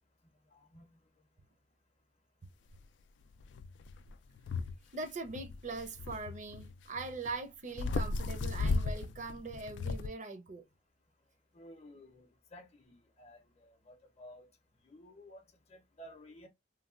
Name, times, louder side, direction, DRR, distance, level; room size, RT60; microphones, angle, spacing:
voice 1, 0.5-1.0 11.5-14.5 14.8-16.5, equal, 40° left, 0.6 m, -55 dB
sound 1, 2.8-2.9 3.4-4.8 5.0-7.3 7.7-10.1, left 3 dB, 85° left, 0.3 m, -36 dB
voice 2, 4.9-10.7, right 3 dB, 45° right, 0.6 m, -41 dB
3.2 x 2.2 x 2.4 m
head